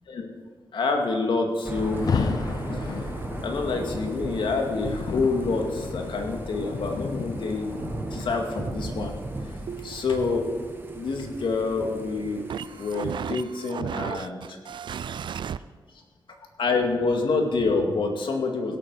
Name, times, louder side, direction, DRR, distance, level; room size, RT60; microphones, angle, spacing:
voice 1, 0.7-2.4 3.4-7.7 8.1-9.2 9.8-10.5 10.9-12.5 12.7-14.6 16.6-18.8, left 3 dB, 85° left, 3 dB, 2.1 m, -27 dB
Thunder / Rain, 1.6-13.3, right 2 dB, 25° right, 1.3 m, -37 dB
Rain, 1.8-10.9, left 5 dB, 50° left, 0.6 m, -34 dB
sound 1, 9.7-15.6, right 8 dB, 70° right, 0.4 m, -36 dB
17.0 x 8.5 x 6.4 m, 1.5 s
wide cardioid pair, 150°, 8 cm